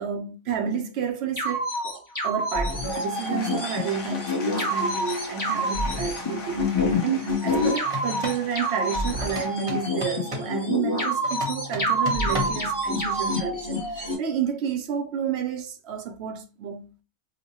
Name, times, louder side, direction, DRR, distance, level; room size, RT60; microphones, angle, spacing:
voice 1, 0.0-16.9, right 7 dB, 60° right, 0.8 m, -30 dB
sound 1, 1.4-14.1, left 1 dB, 15° left, 0.8 m, -27 dB
Applause / Crowd, 2.5-10.7, left 2 dB, 85° left, 1.2 m, -39 dB
sound 2, 7.8-8.5 9.2-10.6 11.2-12.7, left 2 dB, 30° right, 0.8 m, -34 dB
3.0 x 2.1 x 4.0 m
omnidirectional pair, 1.4 m